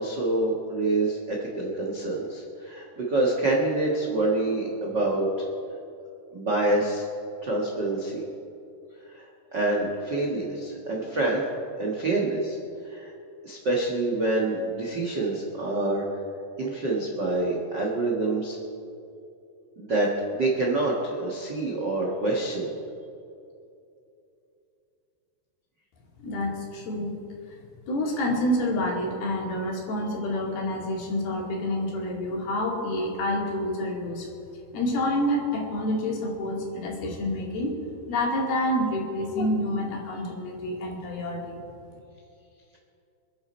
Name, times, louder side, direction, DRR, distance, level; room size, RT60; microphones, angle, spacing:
voice 1, 0.0-5.3 6.3-7.0 7.4-8.2 9.1-11.4 11.8-12.6 12.8-13.1 13.4-16.0 16.6-18.6 19.8-22.7, right 2 dB, 55° right, -2 dB, 1.2 m, -26 dB
voice 2, 26.2-27.1 27.9-34.3 34.7-37.8 38.1-41.6, left 1 dB, 70° left, -1 dB, 4.2 m, -28 dB
27.5 x 9.6 x 4.4 m, 2.7 s
omnidirectional pair, 4.6 m